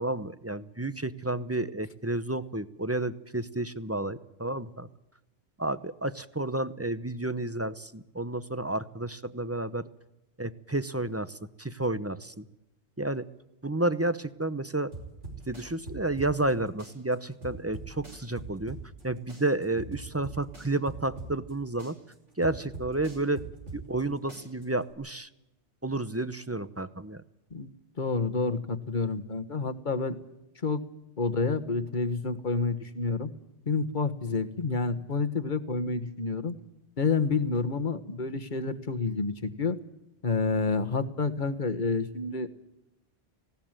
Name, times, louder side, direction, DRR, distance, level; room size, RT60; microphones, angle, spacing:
voice 1, 0.0-4.9 5.6-9.9 10.4-12.5 13.0-13.3 13.6-14.9 15.5-18.8 19.0-22.0 22.4-23.4 23.7-25.3 25.8-27.2, right 2 dB, 15° right, 14 dB, 0.7 m, -31 dB
sound 1, 14.9-16.5 16.8-19.0 19.3-21.5 21.8-24.0 24.3-24.9, right 3 dB, 90° right, 5.6 m, -41 dB
voice 2, 28.0-30.2 30.6-30.8 31.2-33.3 33.7-36.6 37.0-39.8 40.2-42.5, left 4 dB, 45° left, 8 dB, 1.5 m, -29 dB
19.5 x 17.5 x 9.0 m, 0.93 s
omnidirectional pair, 1.2 m